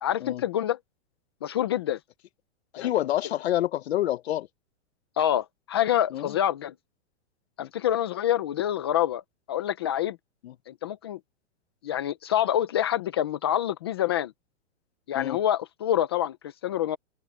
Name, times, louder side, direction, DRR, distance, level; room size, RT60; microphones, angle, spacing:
voice 1, 0.0-0.8 1.4-2.0 2.8-2.9 5.2-6.7 7.6-9.2 9.5-10.2 10.7-11.2 11.8-14.3 15.1-16.4 16.6-17.0, left 11 dB, 20° left, 0.5 m, -26 dB
voice 2, 2.7-4.5 6.1-6.3 7.6-7.7 10.4-10.5 15.1-15.4, left 13 dB, 60° left, 1.0 m, -28 dB
supercardioid pair, 175°, 37 cm